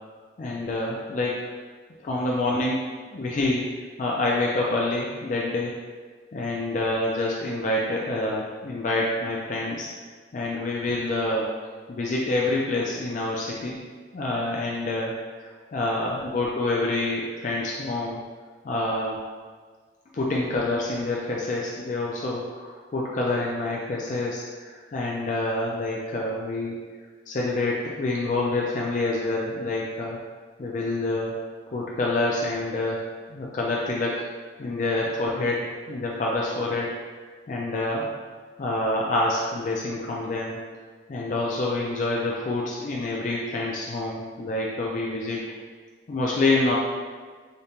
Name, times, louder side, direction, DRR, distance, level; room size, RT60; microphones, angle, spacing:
voice 1, 0.4-1.5 2.0-5.7 6.3-9.9 10.3-11.5 11.9-13.8 14.1-18.2 18.6-19.2 20.1-26.8 27.3-30.2 30.6-31.4 31.7-34.3 34.6-38.1 38.6-40.6 41.1-45.4 46.1-46.7, left 2 dB, 40° left, -3 dB, 0.3 m, -27 dB
5.0 x 2.1 x 2.8 m, 1.5 s
head